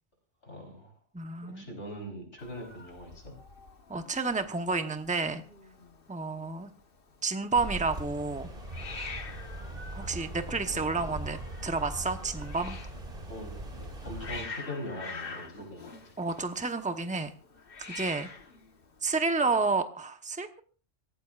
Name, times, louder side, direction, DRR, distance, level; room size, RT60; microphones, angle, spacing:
voice 1, 0.4-0.9 1.4-3.3 10.7-11.3 13.3-13.5 14.0-15.9, equal, 70° left, 1 dB, 4.7 m, -42 dB
voice 2, 1.1-1.7 3.9-5.4 6.1-6.7 7.2-8.5 9.9-12.8 16.2-17.3 17.9-18.3 19.0-20.6, right 4 dB, 5° right, 7 dB, 1.0 m, -30 dB
Hiss, 2.4-19.7, left 4 dB, 50° left, 1.5 m, -46 dB
sound 1, 7.5-14.4, right 1 dB, 45° right, 2.6 m, -40 dB
25.5 x 17.0 x 2.5 m, 0.38 s
omnidirectional pair, 1.2 m